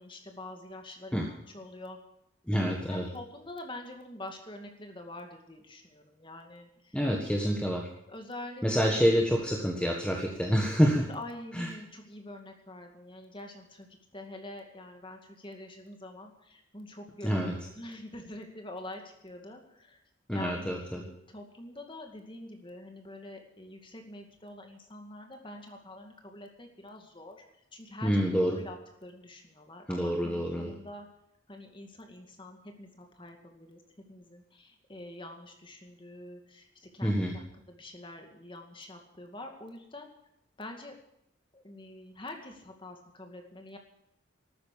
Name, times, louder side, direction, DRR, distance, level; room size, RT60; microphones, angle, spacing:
voice 1, 0.0-2.0 2.9-7.0 8.1-9.0 11.0-13.9 14.1-20.0 20.3-27.4 27.7-28.8 29.0-31.1 31.5-33.8 34.1-40.1 40.6-40.9 41.5-43.8, left 1 dB, 25° left, 3 dB, 2.2 m, -46 dB
voice 2, 2.5-3.1 6.9-7.9 8.6-11.1 11.5-11.7 17.2-17.5 20.3-21.0 28.0-28.6 29.9-30.7 37.0-37.3, equal, 5° left, 0 dB, 1.5 m, -27 dB
13.0 x 9.7 x 10.0 m, 0.79 s
head